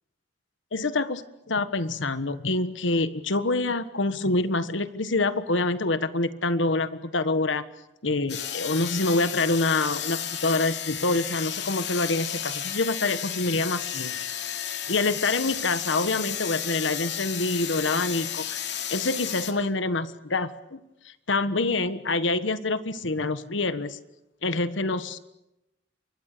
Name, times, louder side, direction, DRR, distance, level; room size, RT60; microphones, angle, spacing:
voice 1, 0.7-7.6 8.0-14.2 14.5-20.8 21.0-24.0 24.4-25.2, left 2 dB, 90° left, 12 dB, 1.5 m, -26 dB
sound 1, 8.3-19.5, left 9 dB, 65° left, 2.9 m, -33 dB
29.0 x 24.0 x 6.8 m, 0.89 s
head